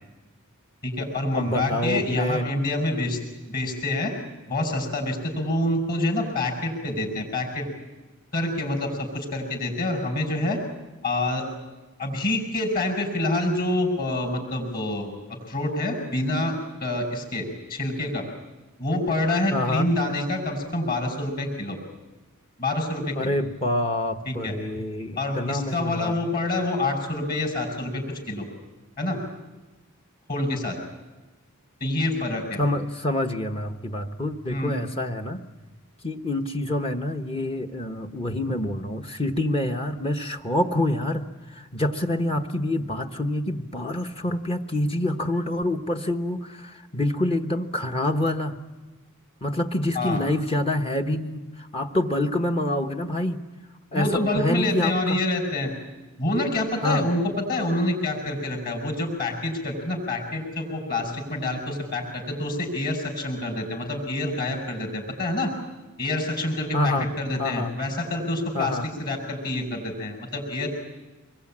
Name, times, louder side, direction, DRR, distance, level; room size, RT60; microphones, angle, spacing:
voice 1, 0.8-3.2 3.5-4.1 4.5-7.6 8.3-10.6 11.0-11.4 12.0-15.1 15.5-16.5 16.8-17.4 17.7-18.2 18.8-21.8 22.6-23.3 24.3-24.5 25.2-28.4 29.0-29.2 30.3-30.8 31.8-32.6 34.5-34.7 49.9-50.2 53.9-55.7 56.2-65.5 66.0-70.7, left 1 dB, 45° left, 3 dB, 5.7 m, -27 dB
voice 2, 1.3-2.5 19.5-19.9 23.1-26.2 32.6-35.4 36.0-41.2 41.5-48.5 49.4-51.4 51.7-53.4 53.9-55.2 56.8-57.1 66.7-67.1 67.4-67.7 68.5-68.9, left 1 dB, 25° left, 4 dB, 1.0 m, -26 dB
25.0 x 22.0 x 8.7 m, 1.2 s
head